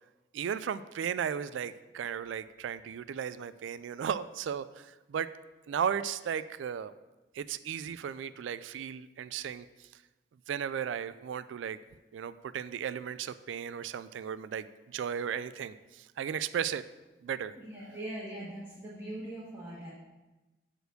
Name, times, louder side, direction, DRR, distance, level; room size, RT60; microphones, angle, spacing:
voice 1, 0.3-4.6 5.1-5.3 5.7-6.9 7.3-9.6 10.5-11.8 12.1-15.7 16.2-16.8 17.2-17.5, right 8 dB, 90° right, 15 dB, 0.3 m, -35 dB
voice 2, 17.6-19.9, right 1 dB, 10° right, -11 dB, 1.6 m, -41 dB
6.7 x 4.5 x 6.5 m, 1.1 s
head